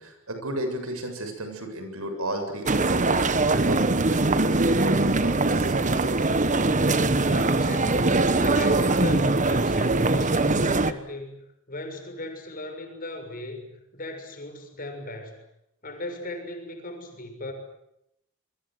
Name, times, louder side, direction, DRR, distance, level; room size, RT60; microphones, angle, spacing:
voice 1, 0.0-3.8 4.1-6.1, right 1 dB, 85° right, 6 dB, 7.5 m, -34 dB
sound 1, 2.7-10.9, right 2 dB, 35° right, 1.3 m, -22 dB
voice 2, 7.2-15.4 15.8-17.5, left 2 dB, 45° left, 5 dB, 6.5 m, -37 dB
28.5 x 23.0 x 7.9 m, 0.80 s
head